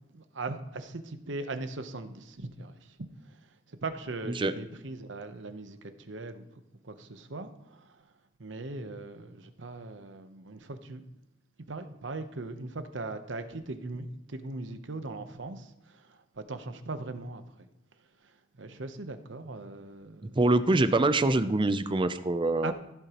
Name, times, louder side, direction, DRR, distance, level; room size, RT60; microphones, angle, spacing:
voice 1, 0.1-3.0 3.2-3.4 3.7-6.5 6.8-8.0 8.4-11.0 11.7-17.7 18.2-20.4 22.6-22.7, right 2 dB, 75° right, 0.9 m, -40 dB
voice 2, 20.4-22.7, right 2 dB, 25° right, 0.5 m, -24 dB
15.0 x 8.2 x 3.0 m
head